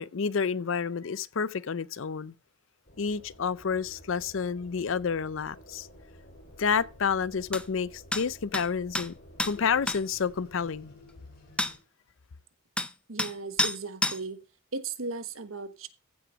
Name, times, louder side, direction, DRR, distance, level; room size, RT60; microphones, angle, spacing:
voice 1, 0.0-2.3 3.0-5.9 6.6-9.1 9.4-10.9, left 6 dB, 65° left, 0.5 m, -29 dB
sound 1, 2.8-11.8, equal, 45° left, 6.3 m, -52 dB
sound 2, 7.5-7.6 8.1-8.2 8.5-8.7 8.9-9.1 9.4-9.5 9.9-10.0 11.6-11.7 12.8-12.9 13.2-13.3 13.6-13.8 14.0-14.2, left 1 dB, 5° left, 0.5 m, -28 dB
voice 2, 13.1-14.4 14.7-15.9, right 4 dB, 80° right, 1.2 m, -36 dB
15.0 x 6.1 x 5.1 m
head